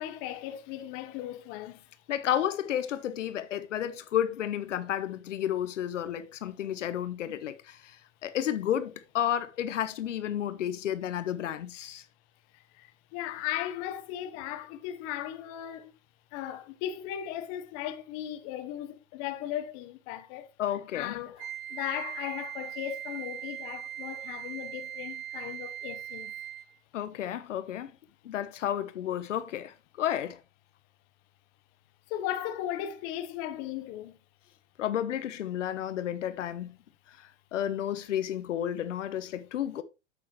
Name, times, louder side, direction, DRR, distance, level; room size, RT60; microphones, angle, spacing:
voice 1, 0.0-1.9 12.5-15.9 16.3-20.5 20.9-26.3 32.1-34.2, left 12 dB, 40° left, 1.1 m, -37 dB
voice 2, 2.1-12.0 20.6-21.2 26.9-27.9 28.2-30.4 34.8-36.8 37.1-39.8, left 10 dB, 80° left, 1.2 m, -32 dB
Wind instrument woodwind instrument, 21.4-26.8, right 11 dB, 45° right, 1.1 m, -40 dB
8.6 x 8.6 x 3.2 m
hypercardioid pair, 140°, 36 cm